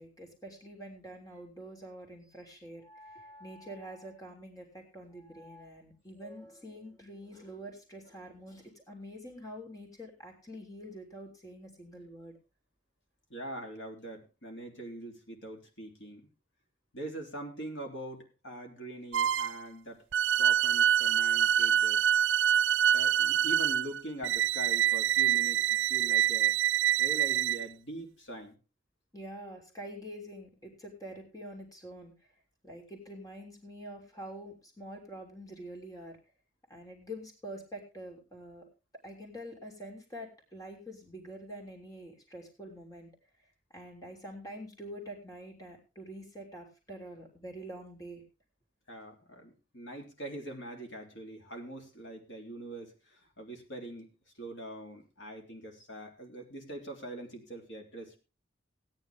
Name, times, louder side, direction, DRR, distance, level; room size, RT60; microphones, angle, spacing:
voice 1, 0.0-12.4 29.1-32.1 32.6-36.2 36.7-38.7 39.0-43.1 43.7-48.2, equal, 20° left, 1 dB, 3.1 m, -46 dB
voice 2, 13.3-16.3 16.9-20.0 20.3-22.1 22.9-26.5 27.0-28.6 48.9-58.2, right 1 dB, 70° left, 2 dB, 3.3 m, -43 dB
sound 1, 19.1-19.6 20.1-27.6, right 10 dB, 90° right, 0.5 m, -26 dB
17.0 x 9.8 x 3.6 m, 0.31 s
head